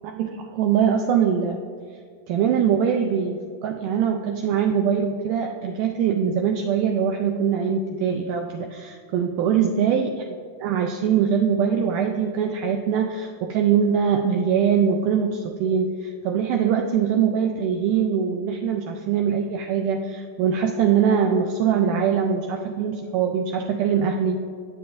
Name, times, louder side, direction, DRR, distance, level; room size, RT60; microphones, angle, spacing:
voice 1, 0.0-1.6 2.3-10.3 10.6-24.4, right 7 dB, 80° right, 3 dB, 2.0 m, -22 dB
19.0 x 6.8 x 2.6 m, 2.2 s
omnidirectional pair, 4.0 m